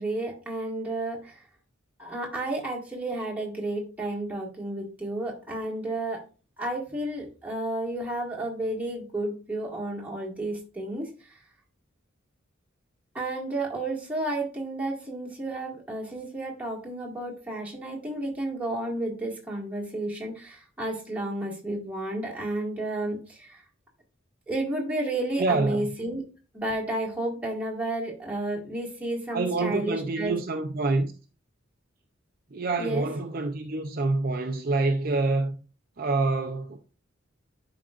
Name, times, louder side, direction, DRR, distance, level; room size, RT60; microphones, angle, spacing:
voice 1, 0.0-1.4 2.0-6.2 6.6-11.4 13.1-23.6 24.5-26.2 26.5-30.4 32.8-33.1, right 2 dB, 5° right, 2.0 m, -32 dB
voice 2, 25.4-25.9 29.3-31.1 32.5-35.5 36.0-36.8, right 3 dB, 45° right, 0.6 m, -26 dB
11.0 x 4.9 x 2.5 m
head